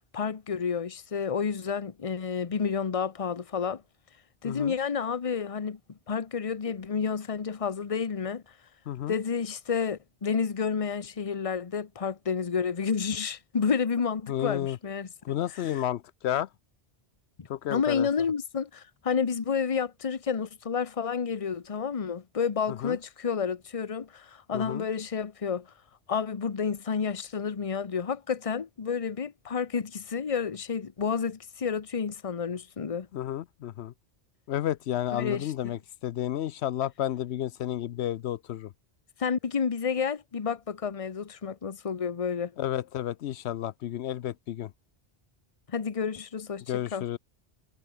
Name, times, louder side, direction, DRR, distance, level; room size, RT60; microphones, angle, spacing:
voice 1, 0.1-3.8 4.4-5.8 6.1-8.4 9.1-15.8 17.7-25.7 26.1-33.1 35.1-35.7 39.2-42.5 45.7-47.1, left 6 dB, 35° left, 0.9 m, -30 dB
voice 2, 14.3-14.8 15.2-16.5 17.5-18.1 22.8-23.0 24.5-24.8 33.1-33.9 34.5-38.7 42.6-44.7 46.7-47.2, left 12 dB, 80° left, 0.9 m, -31 dB
omnidirectional pair, 1.1 m